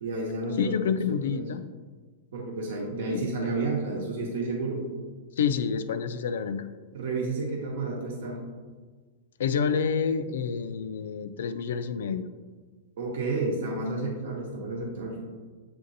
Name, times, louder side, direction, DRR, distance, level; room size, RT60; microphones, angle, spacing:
voice 1, 0.0-0.8 1.2-1.5 2.3-4.8 6.9-8.4 13.0-15.2, right 3 dB, 75° right, -2 dB, 0.8 m, -31 dB
voice 2, 0.6-1.6 2.9-3.5 5.4-6.7 9.4-12.3, left 6 dB, 80° left, 11 dB, 0.3 m, -28 dB
7.4 x 2.6 x 2.6 m, 1.4 s
hypercardioid pair, 130°, 0 cm